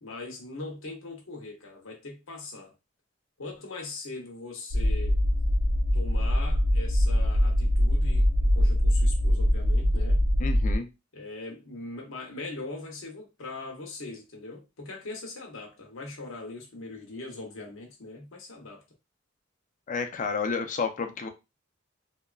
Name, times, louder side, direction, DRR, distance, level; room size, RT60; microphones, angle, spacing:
voice 1, 0.0-2.7 3.4-5.2 5.9-10.2 11.1-18.8, left 3 dB, 80° left, 0.7 m, -41 dB
sound 1, 4.7-10.8, equal, 90° right, 0.6 m, -23 dB
voice 2, 10.4-10.9 19.9-21.3, left 5 dB, 40° left, 0.4 m, -30 dB
2.8 x 2.2 x 2.3 m
head